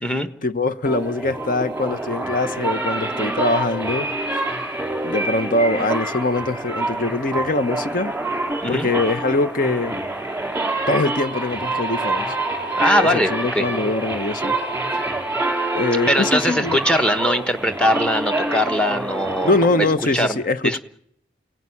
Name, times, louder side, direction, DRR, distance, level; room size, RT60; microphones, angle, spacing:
voice 1, 0.4-4.1 5.0-8.1 8.7-10.0 10.9-12.4 13.0-14.6 14.9-15.1 15.7-16.8 19.4-20.8, left 2 dB, 45° left, 1.0 m, -23 dB
sound 1, 0.9-20.2, right 2 dB, 10° right, 3.9 m, -26 dB
voice 2, 12.8-13.7 16.1-19.9 20.1-20.8, equal, 5° left, 1.3 m, -21 dB
29.0 x 16.5 x 9.8 m
head